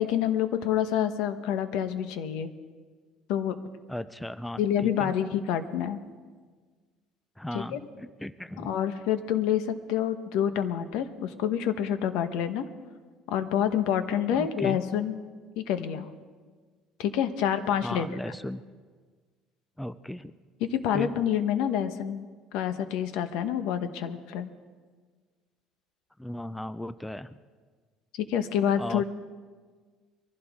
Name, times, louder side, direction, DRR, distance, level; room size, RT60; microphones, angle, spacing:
voice 1, 0.0-2.5 3.3-3.6 4.6-6.0 7.5-7.8 8.6-12.7 13.3-15.2 15.6-16.1 17.0-18.1 20.6-24.5 28.2-29.1, left 9 dB, 75° left, 10 dB, 1.1 m, -27 dB
voice 2, 3.9-5.1 7.4-8.8 14.3-14.8 17.8-18.6 19.8-20.3 20.9-21.1 26.2-27.4 28.8-29.1, left 1 dB, 5° left, 14 dB, 0.4 m, -36 dB
23.0 x 15.5 x 3.6 m, 1.5 s
cardioid pair, 135°, 0 cm